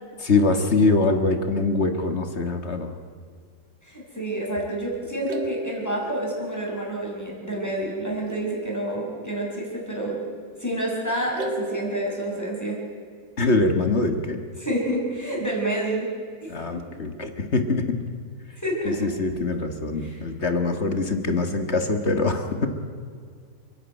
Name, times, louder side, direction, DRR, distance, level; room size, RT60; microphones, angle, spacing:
voice 1, 0.2-3.0 13.4-14.4 16.5-18.0 18.9-22.7, left 3 dB, 40° left, 7 dB, 1.8 m, -23 dB
voice 2, 3.8-10.2 10.6-12.8 14.6-16.1 16.4-16.5 18.5-19.1 20.0-20.2, right 1 dB, 10° left, -2 dB, 5.8 m, -28 dB
sound 1, 5.3-7.9 8.3-9.7 11.3-13.3, right 1 dB, 90° right, 2.3 m, -35 dB
29.5 x 11.0 x 9.1 m, 2.1 s
omnidirectional pair, 1.9 m